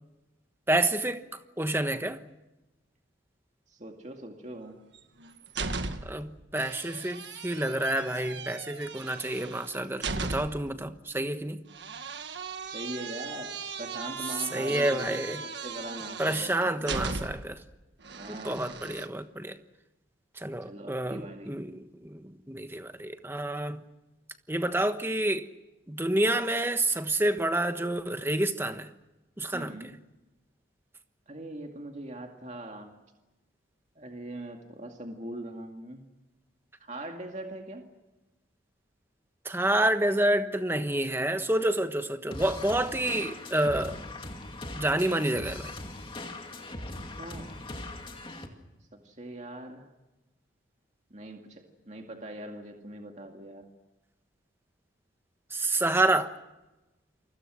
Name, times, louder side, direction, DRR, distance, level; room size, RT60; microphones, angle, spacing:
voice 1, 0.7-1.2 1.6-2.2 6.0-11.6 14.5-15.4 16.2-17.6 18.3-19.6 20.4-21.7 22.0-23.8 24.5-25.5 25.9-28.9 29.4-29.8 39.4-44.0 44.7-45.7 55.5-56.3, right 1 dB, 10° right, 1.2 m, -28 dB
voice 2, 3.7-4.8 12.6-17.2 18.1-18.8 20.7-21.5 29.5-29.9 31.3-32.9 34.0-36.0 36.8-37.8 47.2-47.6 48.9-49.9 51.1-53.7, right 1 dB, 35° right, 2.2 m, -41 dB
sound 1, 4.9-6.3 6.6-10.7 11.7-17.6 18.0-19.1, right 4 dB, 60° right, 1.7 m, -37 dB
sound 2, 42.3-48.5, left 2 dB, 25° left, 2.4 m, -40 dB
29.5 x 24.5 x 6.4 m
head